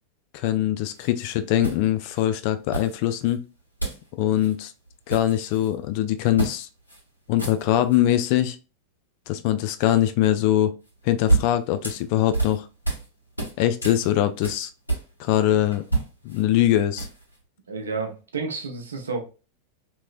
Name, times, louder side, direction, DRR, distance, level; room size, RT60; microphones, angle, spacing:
voice 1, 0.3-3.4 4.2-4.7 5.1-6.7 7.3-8.6 9.3-10.7 11.0-12.7 13.6-14.7 15.2-15.8 16.2-17.1, left 12 dB, 45° left, 0.4 m, -22 dB
sound 1, 0.9-1.1 1.6-2.2 2.7-3.3 3.8-4.1 4.3-4.5 4.9-5.7 6.4-6.6 6.9-7.0 7.3-8.0 10.9-13.1 13.4-15.4 15.7-17.4, right 2 dB, 85° left, 1.5 m, -29 dB
voice 2, 17.7-19.2, right 4 dB, 70° right, 0.7 m, -30 dB
3.0 x 2.9 x 2.4 m
figure-of-eight pair, 90°, 0 cm